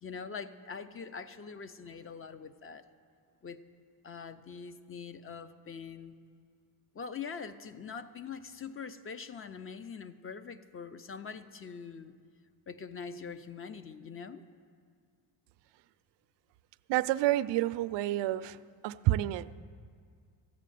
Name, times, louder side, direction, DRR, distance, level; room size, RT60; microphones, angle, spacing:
voice 1, 0.0-2.8 3.4-3.6 4.0-6.2 6.9-12.1 12.7-14.4, left 6 dB, 30° left, 12 dB, 0.6 m, -43 dB
voice 2, 16.9-18.6 18.8-19.5, right 15 dB, 70° right, 13 dB, 0.5 m, -29 dB
14.0 x 7.5 x 9.2 m, 2.2 s
cardioid pair, 100°, 45 cm